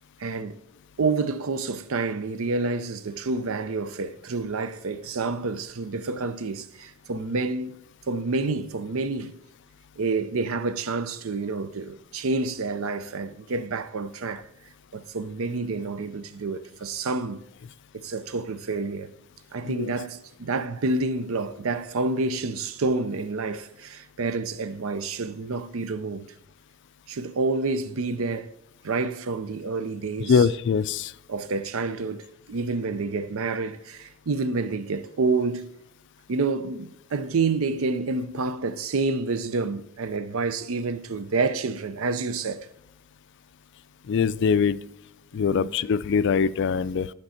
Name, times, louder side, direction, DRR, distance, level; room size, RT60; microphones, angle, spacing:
voice 1, 0.2-0.6 1.0-9.4 10.0-14.4 14.9-17.4 17.9-19.1 19.5-26.3 27.1-28.5 28.8-30.5 31.3-35.7 36.3-42.7 45.5-45.7, right 3 dB, 70° right, 0.6 m, -28 dB
voice 2, 30.3-31.1 44.1-44.8 45.3-47.1, left 6 dB, 55° left, 0.3 m, -22 dB
10.5 x 5.3 x 4.2 m
head